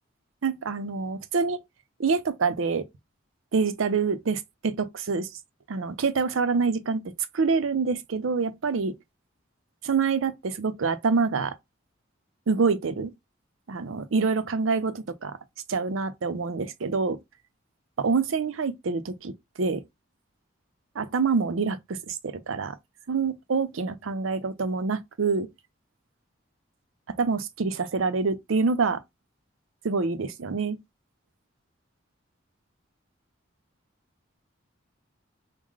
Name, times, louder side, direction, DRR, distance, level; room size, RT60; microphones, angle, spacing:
voice 1, 0.4-1.6 2.0-2.9 3.5-5.3 5.7-7.0 7.3-9.0 9.8-11.6 12.5-13.1 13.7-15.4 15.7-17.2 18.0-19.8 21.0-22.8 23.1-25.5 27.2-29.0 29.8-30.8, right 4 dB, 85° right, 0.5 m, -26 dB
4.8 x 2.1 x 3.7 m
head